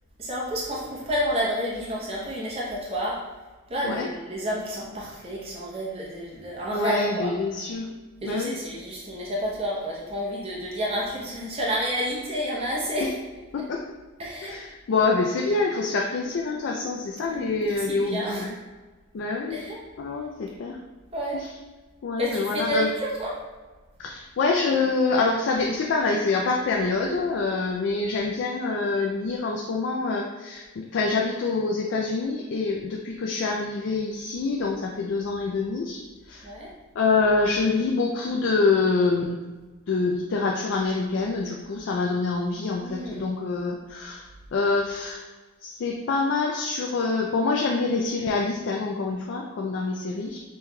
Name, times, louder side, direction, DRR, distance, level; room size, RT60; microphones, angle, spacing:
voice 1, 0.2-3.2 3.7-7.3 8.2-13.1 14.2-14.5 17.3-18.5 19.5-19.8 21.1-21.4 22.2-23.4 36.4-36.7 42.7-43.3, equal, 25° right, -5 dB, 0.7 m, -30 dB
voice 2, 6.7-7.9 8.2-8.6 13.0-13.1 13.5-13.8 14.4-18.5 19.1-19.6 20.0-20.8 21.3-21.5 22.0-22.9 24.0-36.5 37.0-39.4 39.9-45.2 45.6-50.4, left 3 dB, 55° left, 0 dB, 0.3 m, -26 dB
5.3 x 3.0 x 2.2 m, 1.3 s
head